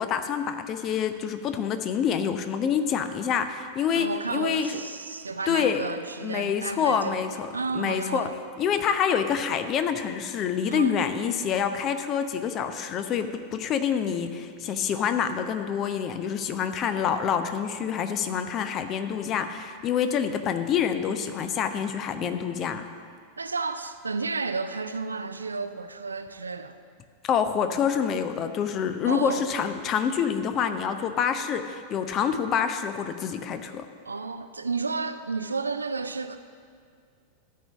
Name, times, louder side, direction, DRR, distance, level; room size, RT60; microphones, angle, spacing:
voice 1, 0.0-4.8 5.5-5.9 6.2-7.5 7.7-8.3 8.6-22.9 27.3-33.9, left 7 dB, 35° left, 9 dB, 0.7 m, -27 dB
voice 2, 3.9-8.3 10.7-11.0 23.4-26.8 29.0-29.4 34.0-36.4, right 4 dB, 75° right, 10 dB, 0.5 m, -32 dB
13.5 x 4.7 x 7.0 m, 2.1 s
figure-of-eight pair, 90°, 0 cm